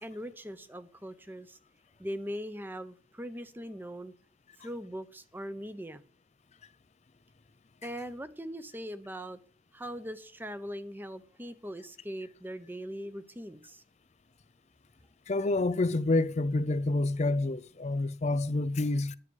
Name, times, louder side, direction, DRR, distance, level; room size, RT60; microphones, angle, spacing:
voice 1, 0.0-1.6 2.0-4.1 4.6-6.0 7.8-9.4 9.7-13.8, equal, 10° right, 0.8 m, -40 dB
voice 2, 15.3-19.1, left 2 dB, 35° left, 0.4 m, -28 dB
11.0 x 9.8 x 6.3 m
head